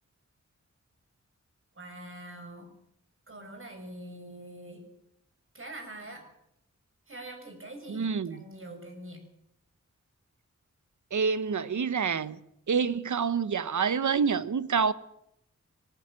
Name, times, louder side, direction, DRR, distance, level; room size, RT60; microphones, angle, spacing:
voice 1, 1.7-2.7 3.3-4.8 5.5-6.2 7.1-9.2, right 1 dB, 45° right, 6.9 m, -44 dB
voice 2, 7.9-8.4 11.1-12.4 12.7-14.9, right 6 dB, 75° right, 1.1 m, -27 dB
20.0 x 18.0 x 7.5 m
wide cardioid pair, 90°, 30 cm